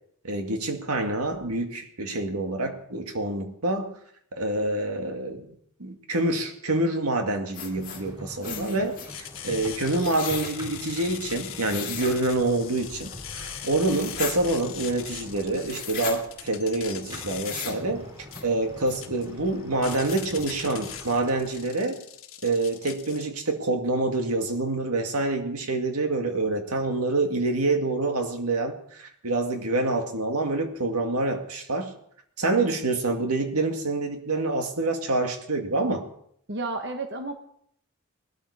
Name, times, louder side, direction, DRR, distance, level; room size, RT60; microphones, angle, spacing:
voice 1, 0.2-3.9 4.3-5.5 5.8-18.1 18.4-22.0 22.4-31.9 32.4-36.1, right 2 dB, 85° right, 5 dB, 2.1 m, -27 dB
sound 1, 7.5-8.0 8.4-9.1 10.0-10.5 11.6-12.2 13.8-14.4 15.7-16.2 17.4-17.8 18.3-18.4 18.8-19.0 19.5-19.6 19.9-20.4, left 7 dB, 40° left, 2.5 m, -36 dB
sound 2, 7.8-21.7, equal, 20° right, 3.7 m, -44 dB
voice 2, 8.5-8.9 36.5-37.3, right 2 dB, 50° right, 5 dB, 1.2 m, -32 dB
sound 3, 9.1-23.2, left 10 dB, 60° left, 1.6 m, -41 dB
19.5 x 13.0 x 4.9 m, 0.69 s
head